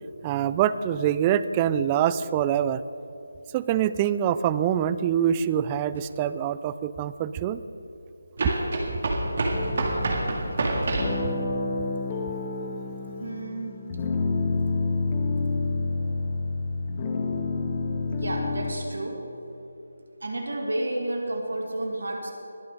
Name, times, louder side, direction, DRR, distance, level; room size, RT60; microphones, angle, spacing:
voice 1, 0.2-2.8 3.5-7.6, right 10 dB, 20° right, 14 dB, 0.3 m, -25 dB
sound 1, 5.9-6.0 8.4-11.2, right 2 dB, 50° right, 2.0 m, -27 dB
sound 2, 9.5-18.7, left 3 dB, 30° left, 1.4 m, -29 dB
voice 2, 13.2-13.7 18.1-19.2 20.2-22.3, right 1 dB, 70° right, 1 dB, 2.3 m, -31 dB
21.0 x 7.0 x 5.0 m, 2.8 s
figure-of-eight pair, 155°, 0 cm